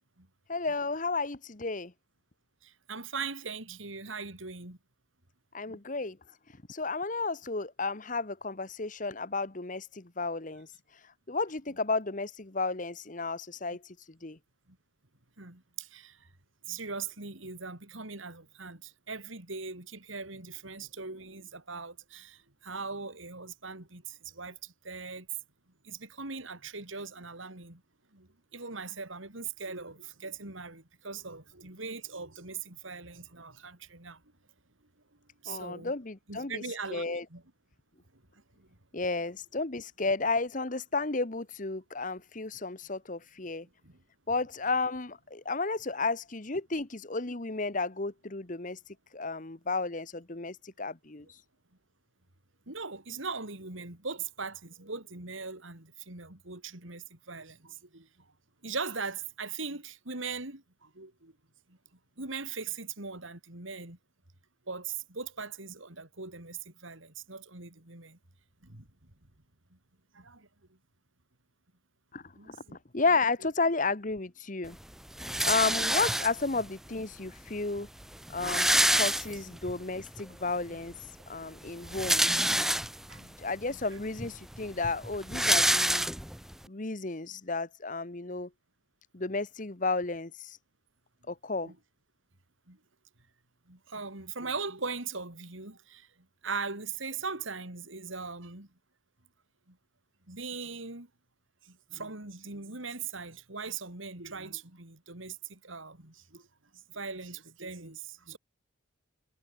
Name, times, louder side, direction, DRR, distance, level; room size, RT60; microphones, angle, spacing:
voice 1, 0.5-1.9 5.5-14.4 35.5-37.2 38.9-43.7 44.3-51.4 72.1-72.6 72.9-74.8 75.4-77.9 78.3-82.5 83.2-86.1 86.7-88.5 89.1-90.6 91.3-91.7, left 3 dB, 40° left, 1.3 m, -33 dB
voice 2, 2.6-4.8 5.7-5.8 14.7-14.8 15.4-16.3 16.7-25.3 25.8-27.8 28.1-34.2 35.4-35.9 36.3-37.4 38.1-38.8 43.8-44.0 52.7-58.3 58.6-61.3 61.7-61.8 62.2-64.0 64.7-68.2 68.6-69.1 69.7-69.8 70.1-70.5 72.3-72.8 75.6-76.0 78.7-78.8 79.5-79.6 83.1-83.3 83.7-84.0 91.6-91.8 92.7-92.8 93.7-96.1 96.4-98.7 99.7-99.8 100.3-101.1 101.6-106.5 106.7-108.4, right 4 dB, 75° right, 4.0 m, -40 dB
sound 1, 75.2-76.6 77.5-77.6 77.8-77.9 78.1-79.7 80.2-80.3 81.7-83.2 83.8-83.9 84.2-86.5, right 1 dB, ahead, 0.6 m, -27 dB
head